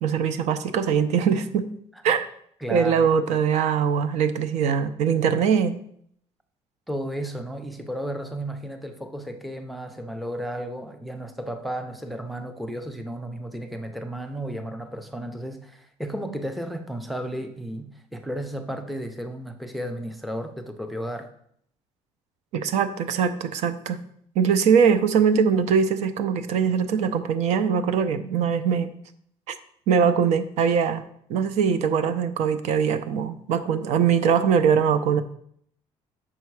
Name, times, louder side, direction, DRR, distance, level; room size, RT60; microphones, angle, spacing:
voice 1, 0.0-1.7 2.0-2.3 2.7-5.8 22.5-24.0 24.4-28.9 29.9-31.0 31.3-35.2, right 7 dB, 70° right, 11 dB, 0.6 m, -22 dB
voice 2, 2.6-3.1 6.9-21.3, right 1 dB, ahead, 7 dB, 0.5 m, -33 dB
6.3 x 5.6 x 4.7 m, 0.66 s
cardioid pair, 170°, 12 cm